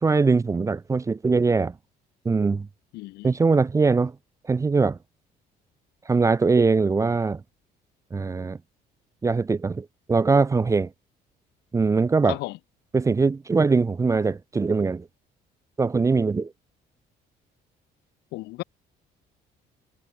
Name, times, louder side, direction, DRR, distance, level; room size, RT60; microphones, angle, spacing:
voice 1, 0.0-1.7 2.3-2.7 3.2-4.1 4.5-5.0 6.1-7.4 8.1-8.6 9.2-10.9 11.7-12.4 12.9-15.1 15.8-16.5, right 4 dB, 20° right, 0.5 m, -21 dB
voice 2, 2.9-3.3 12.3-12.6 18.3-18.6, left 20 dB, 85° left, 0.7 m, -34 dB
cardioid pair, 110°, 17 cm